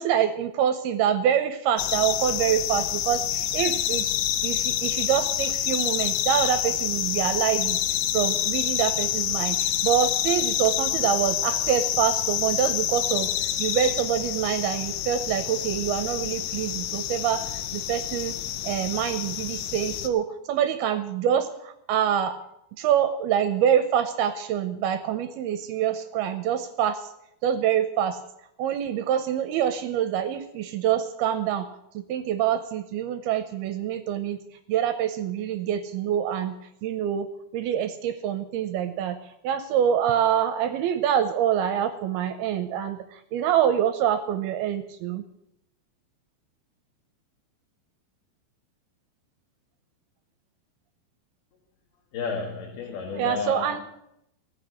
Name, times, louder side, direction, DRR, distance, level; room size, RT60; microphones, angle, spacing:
voice 1, 0.0-4.1 4.4-7.8 8.1-13.3 13.6-18.3 18.6-22.4 22.8-27.1 27.4-28.2 28.6-31.7 31.9-34.4 34.7-36.6 36.8-37.3 37.5-39.2 39.4-45.2 53.1-53.8, right 9 dB, 75° right, 9 dB, 2.4 m, -25 dB
sound 1, 1.8-20.1, left 11 dB, 85° left, 3.2 m, -27 dB
voice 2, 52.1-53.8, left 4 dB, 65° left, 1 dB, 3.3 m, -31 dB
17.5 x 6.2 x 9.9 m, 0.81 s
omnidirectional pair, 5.2 m